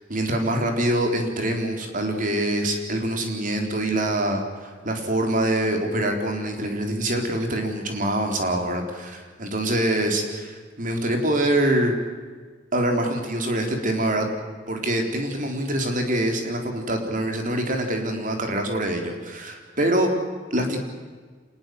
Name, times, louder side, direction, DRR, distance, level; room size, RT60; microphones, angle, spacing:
voice 1, 0.1-11.9 12.7-14.3 14.7-20.1 20.5-20.8, right 1 dB, 45° right, 4 dB, 4.1 m, -25 dB
26.5 x 20.0 x 7.9 m, 1.4 s
head